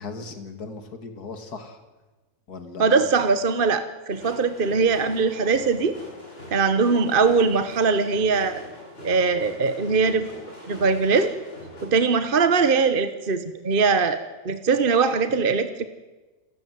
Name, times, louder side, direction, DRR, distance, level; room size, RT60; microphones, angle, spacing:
voice 1, 0.0-1.8 2.5-3.1, left 4 dB, 85° left, 8 dB, 2.6 m, -37 dB
voice 2, 2.8-6.0 6.5-8.6 9.0-10.3 10.7-11.4 11.8-14.2 14.4-15.9, right 4 dB, 40° right, 11 dB, 1.1 m, -21 dB
sound 1, 4.1-11.8, left 1 dB, 40° left, 8.0 m, -42 dB
28.0 x 14.5 x 9.4 m, 1.2 s
omnidirectional pair, 1.6 m